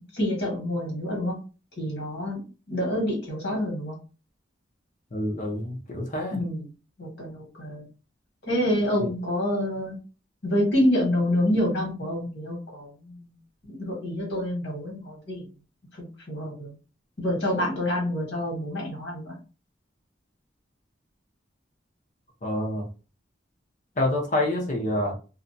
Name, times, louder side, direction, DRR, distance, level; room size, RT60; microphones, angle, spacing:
voice 1, 0.1-1.3 1.8-2.4 2.7-4.0 6.3-6.7 7.0-7.9 8.5-10.0 10.4-13.3 13.6-15.4 16.0-16.7 17.2-19.3, left 1 dB, 65° left, 1.4 m, -27 dB
voice 2, 5.1-6.4 9.0-9.1 22.4-22.9 24.0-25.1, left 1 dB, 40° left, 0.7 m, -27 dB
2.7 x 2.2 x 2.6 m
head